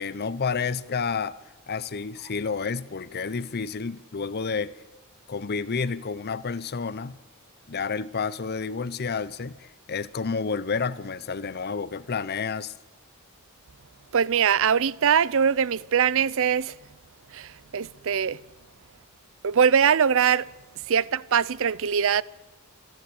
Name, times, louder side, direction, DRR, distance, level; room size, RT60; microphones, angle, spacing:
voice 1, 0.0-1.4 1.7-4.8 5.3-7.2 7.7-12.7, left 5 dB, 50° left, 0.7 m, -30 dB
voice 2, 14.1-16.7 17.3-18.4 19.4-20.5 20.9-22.2, right 7 dB, 65° right, 0.5 m, -22 dB
27.0 x 11.5 x 8.6 m
head